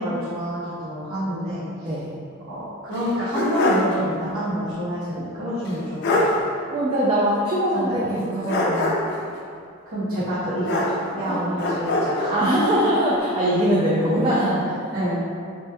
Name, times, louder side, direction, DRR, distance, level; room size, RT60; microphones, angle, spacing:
voice 1, 0.0-1.9 2.5-6.4 7.7-8.2 9.9-10.8 11.1-12.5 14.9-15.2, equal, 90° right, -13 dB, 1.0 m, -27 dB
sound 1, 2.9-4.0 4.3-4.4 5.7-5.8 6.0-6.4 8.5-9.2 10.6-11.3 11.6-12.4, left 1 dB, 55° left, 0.4 m, -23 dB
voice 2, 6.7-9.0 11.3-11.4 12.3-14.7, right 1 dB, 25° right, -7 dB, 0.3 m, -22 dB
3.0 x 2.9 x 2.2 m, 2.3 s
head